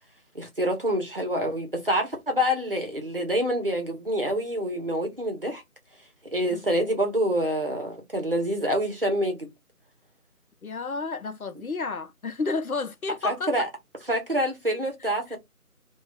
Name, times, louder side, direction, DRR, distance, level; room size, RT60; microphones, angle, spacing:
voice 1, 0.3-5.6 6.3-9.5 13.2-13.7 14.1-15.4, equal, 40° right, 0.8 m, -26 dB
voice 2, 10.6-13.6 15.0-15.4, left 4 dB, 70° left, 0.7 m, -32 dB
2.4 x 2.3 x 3.2 m
figure-of-eight pair, 165°, 44 cm